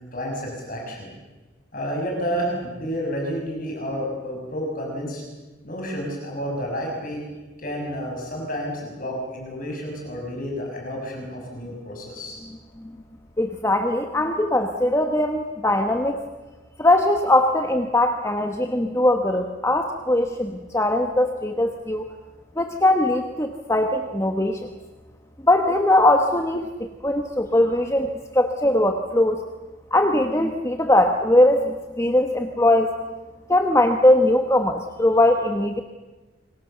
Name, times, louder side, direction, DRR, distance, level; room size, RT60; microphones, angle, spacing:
voice 1, 0.1-1.1 1.7-5.2 5.6-7.2 7.6-12.4, equal, 40° left, -1 dB, 6.6 m, -30 dB
voice 2, 13.4-16.2 16.8-22.0 22.6-24.7 25.5-26.7 27.0-29.4 29.9-32.9 33.5-35.8, left 1 dB, 15° left, 5 dB, 1.3 m, -20 dB
28.5 x 25.0 x 6.9 m, 1.2 s
head